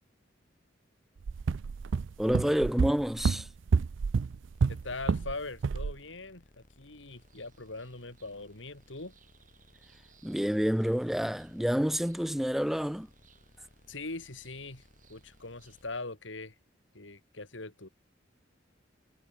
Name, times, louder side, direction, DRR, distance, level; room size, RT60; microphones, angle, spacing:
sound 1, 1.2-5.3 5.6-5.9, right 5 dB, 80° right, 0.4 m, -29 dB
voice 1, 2.2-3.5 10.2-13.1, equal, ahead, 0.3 m, -28 dB
sound 2, 4.5-16.0, left 1 dB, 45° left, 6.0 m, -62 dB
voice 2, 4.7-9.2 13.9-16.5 16.9-17.9, left 3 dB, 75° left, 3.3 m, -41 dB
sound 3, 7.1-15.8, right 6 dB, 45° right, 5.2 m, -66 dB
head